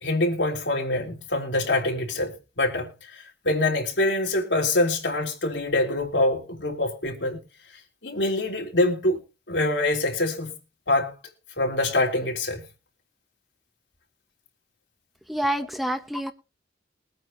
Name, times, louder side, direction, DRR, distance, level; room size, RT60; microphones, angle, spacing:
voice 1, 0.0-2.9 3.4-7.4 8.0-9.2 9.5-10.5 10.9-11.1 11.6-12.6, left 2 dB, 85° left, 3.4 m, -24 dB
voice 2, 15.3-16.3, right 1 dB, ahead, 1.1 m, -27 dB
22.5 x 9.2 x 2.7 m
head